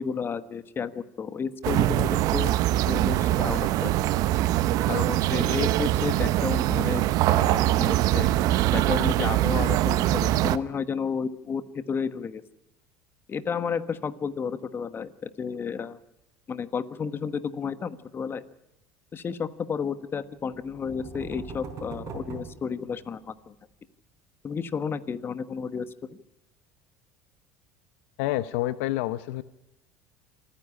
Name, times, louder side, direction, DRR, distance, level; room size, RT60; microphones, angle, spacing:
voice 1, 0.0-3.9 4.9-8.3 8.7-12.4 13.3-16.0 16.5-18.4 19.1-23.5 24.4-26.2, left 6 dB, 30° left, 12 dB, 1.2 m, -32 dB
sound 1, 1.6-10.6, right 15 dB, 60° right, 0.8 m, -23 dB
sound 2, 20.5-23.4, right 5 dB, 45° right, 4.4 m, -41 dB
voice 2, 28.2-29.4, left 16 dB, 75° left, 14 dB, 0.8 m, -28 dB
27.0 x 10.0 x 9.9 m, 0.93 s
supercardioid pair, 90°, 7 cm